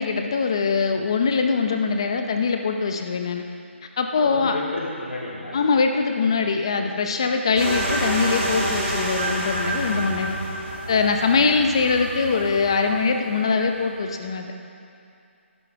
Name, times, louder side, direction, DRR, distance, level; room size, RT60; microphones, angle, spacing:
voice 1, 0.0-3.4 4.0-4.6 5.5-10.4 10.9-14.5, left 4 dB, 25° left, 5 dB, 0.6 m, -22 dB
voice 2, 4.2-5.6 6.7-7.1, left 2 dB, 65° left, -4 dB, 3.5 m, -33 dB
sound 1, 7.6-13.7, right 1 dB, 25° right, 2.7 m, -28 dB
15.5 x 12.5 x 3.5 m, 2.5 s
hypercardioid pair, 180°, 7 cm